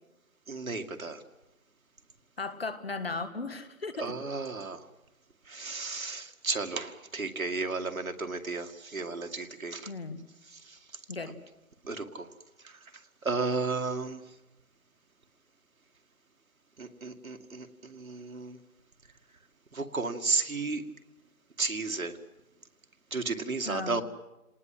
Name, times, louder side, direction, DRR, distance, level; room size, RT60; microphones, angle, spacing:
voice 1, 0.5-1.2 4.0-4.9 5.5-9.9 10.4-11.0 11.8-12.3 12.6-12.9 13.2-14.3 16.8-18.6 19.7-20.8 21.6-22.2 23.1-24.0, right 3 dB, 60° right, 6 dB, 2.3 m, -33 dB
voice 2, 2.4-4.1 9.9-10.2 11.1-11.4 23.7-24.0, left 3 dB, 40° left, 11 dB, 1.8 m, -36 dB
28.0 x 19.5 x 7.8 m, 0.95 s
figure-of-eight pair, 170°, 46 cm